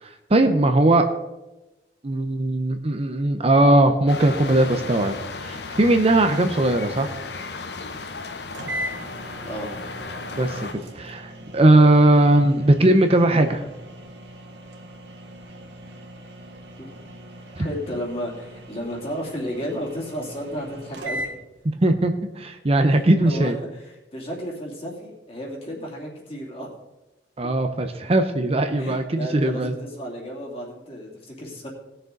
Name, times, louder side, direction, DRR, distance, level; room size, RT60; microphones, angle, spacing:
voice 1, 0.0-1.1 2.0-5.1 5.4-7.1 10.4-10.7 10.9-13.6 17.6-17.7 21.7-23.6 27.4-29.7, right 1 dB, 35° right, 7 dB, 0.7 m, -19 dB
sound 1, 4.1-10.7, left 3 dB, 65° left, 0.9 m, -35 dB
sound 2, 8.2-8.3 8.5-21.3, equal, 80° right, 1.9 m, -39 dB
voice 2, 9.4-9.7 16.8-16.9 17.6-21.2 23.2-26.7 28.8-31.7, equal, 35° left, -2 dB, 2.8 m, -33 dB
19.0 x 6.6 x 3.9 m, 1.0 s
head